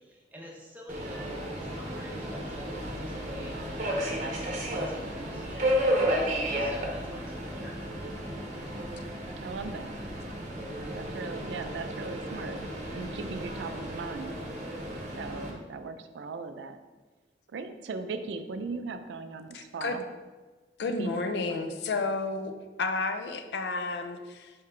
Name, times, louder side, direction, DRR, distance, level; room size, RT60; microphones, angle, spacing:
voice 1, 0.0-4.3 4.6-9.6, equal, 10° right, -3 dB, 0.7 m, -48 dB
Subway metro underground, 0.9-15.5, equal, 45° right, 0.7 m, -33 dB
voice 2, 9.4-9.9 10.9-12.6 12.9-14.4 15.2-16.8 17.5-20.0 21.0-21.7, right 4 dB, 90° right, 8 dB, 0.4 m, -38 dB
voice 3, 19.5-20.0 20.8-24.5, left 3 dB, 75° left, 7 dB, 0.4 m, -31 dB
4.6 x 3.6 x 3.2 m, 1.3 s
head